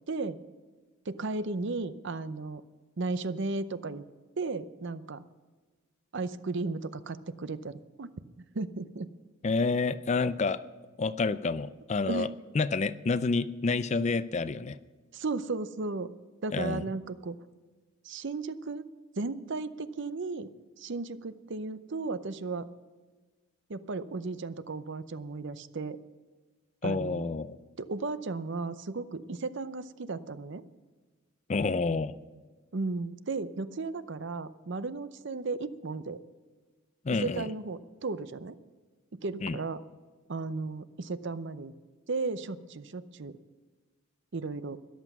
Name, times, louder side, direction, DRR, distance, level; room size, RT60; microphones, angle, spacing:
voice 1, 0.1-0.4 1.1-2.6 3.0-4.0 4.4-5.2 6.1-8.1 8.5-9.1 12.1-12.3 15.1-16.1 16.4-17.4 18.0-18.9 19.2-20.5 20.8-22.7 23.7-26.0 26.8-27.3 27.8-30.6 32.7-36.2 37.2-38.6 39.2-39.8 40.3-41.7 42.1-43.4 44.3-44.8, right 3 dB, 60° right, 13 dB, 0.6 m, -35 dB
voice 2, 9.4-10.6 11.0-12.3 12.5-14.8 16.5-16.9 26.8-27.6 31.5-32.1 37.0-37.4 39.4-39.6, left 4 dB, 35° left, 15 dB, 0.4 m, -29 dB
13.5 x 11.0 x 6.0 m, 1.4 s
head